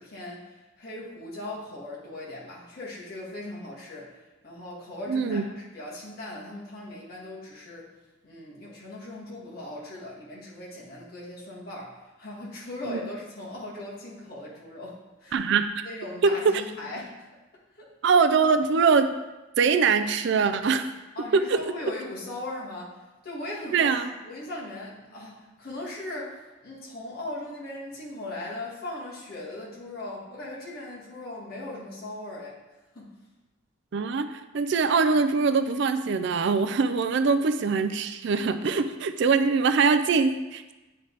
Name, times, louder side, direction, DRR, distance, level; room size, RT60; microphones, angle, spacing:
voice 1, 0.0-7.9 8.2-15.5 15.8-17.3 17.8-17.9 21.1-23.0 23.2-23.9 24.2-32.6 32.9-33.1, left 1 dB, 45° left, -6 dB, 1.6 m, -39 dB
voice 2, 5.1-5.4 12.9-13.0 15.3-15.9 16.2-16.6 18.0-19.1 19.6-20.9 21.3-21.6 23.7-24.1 33.9-40.7, right 5 dB, 55° right, 10 dB, 0.4 m, -23 dB
9.1 x 3.4 x 4.0 m, 1.1 s
head